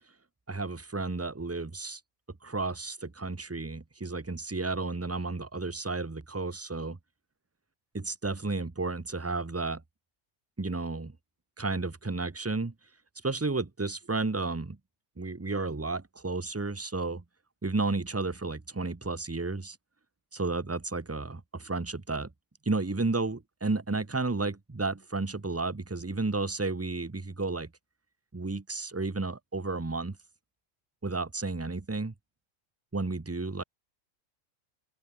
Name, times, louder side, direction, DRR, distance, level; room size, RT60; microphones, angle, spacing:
voice 1, 0.5-2.0 2.4-7.0 7.9-9.8 10.6-11.1 11.6-12.7 13.2-14.8 15.2-17.2 17.6-19.8 20.3-22.3 22.7-27.7 28.3-30.2 31.0-32.1 32.9-33.6, right 3 dB, 15° right, 0.6 m, -32 dB
open air
omnidirectional pair, 1.3 m